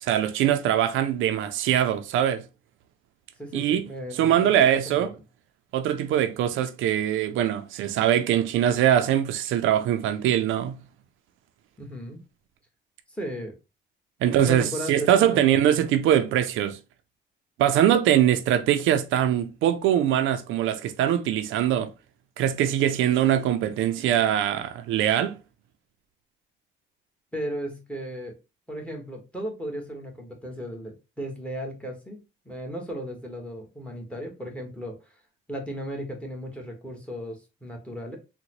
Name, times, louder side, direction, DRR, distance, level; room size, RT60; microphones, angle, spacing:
voice 1, 0.0-2.4 3.5-3.9 4.1-5.1 5.7-10.8 14.2-16.8 17.6-21.9 22.4-25.4, right 10 dB, 85° right, 0.4 m, -22 dB
voice 2, 3.4-5.1 11.8-12.2 13.1-13.6 14.2-15.5 27.3-28.4 28.7-32.2 32.4-35.0 35.5-38.2, equal, 5° left, 1.2 m, -35 dB
3.8 x 2.1 x 2.9 m
cardioid pair, 90°, 20 cm